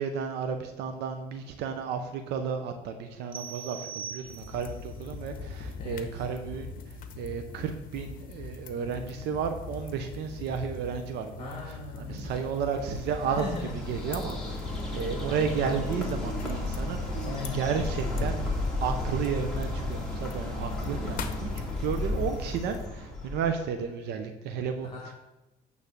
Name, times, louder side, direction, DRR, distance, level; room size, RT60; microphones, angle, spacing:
voice 1, 0.0-6.7 7.2-11.5 12.1-13.5 13.9-18.4 18.8-21.5 21.8-24.9, right 6 dB, 80° right, 6 dB, 0.7 m, -32 dB
sound 1, 3.3-4.8, right 7 dB, 30° right, 0.7 m, -41 dB
sound 2, 4.3-22.9, left 4 dB, 55° left, 0.9 m, -42 dB
voice 2, 5.8-6.3 11.4-12.2 13.3-13.8 15.3-16.6 17.2-17.8 24.9-25.1, left 4 dB, 35° left, 0 dB, 1.6 m, -39 dB
Bird, 12.3-23.7, left 2 dB, 5° left, 2.3 m, -33 dB
9.2 x 3.4 x 6.6 m, 0.99 s
cardioid pair, 110°, 17 cm